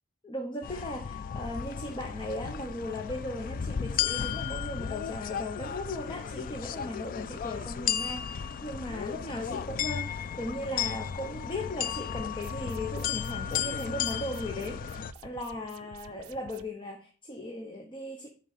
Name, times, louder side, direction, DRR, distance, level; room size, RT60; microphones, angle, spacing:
voice 1, 0.2-18.3, left 1 dB, 20° left, 0.8 m, -37 dB
sound 1, 0.6-15.1, left 8 dB, 40° left, 0.3 m, -34 dB
sound 2, 12.3-16.6, right 6 dB, 85° right, 0.5 m, -50 dB
10.0 x 3.8 x 4.1 m
head